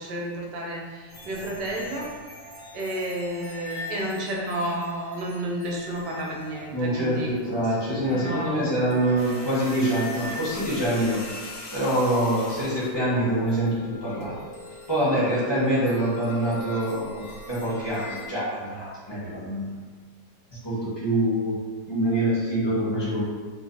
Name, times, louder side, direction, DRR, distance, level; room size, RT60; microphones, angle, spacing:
voice 1, 0.0-2.1 2.7-7.3 8.0-8.7, right 1 dB, 85° right, -3 dB, 1.4 m, -31 dB
sound 1, 1.1-18.3, left 1 dB, 50° left, 0.8 m, -42 dB
voice 2, 6.7-14.4 14.9-19.7 20.6-21.6 21.9-23.2, right 1 dB, 20° left, -9 dB, 0.9 m, -25 dB
sound 2, 9.2-13.0 14.2-14.4, left 2 dB, 75° left, 1.2 m, -41 dB
4.8 x 2.3 x 2.7 m, 1.5 s
omnidirectional pair, 1.8 m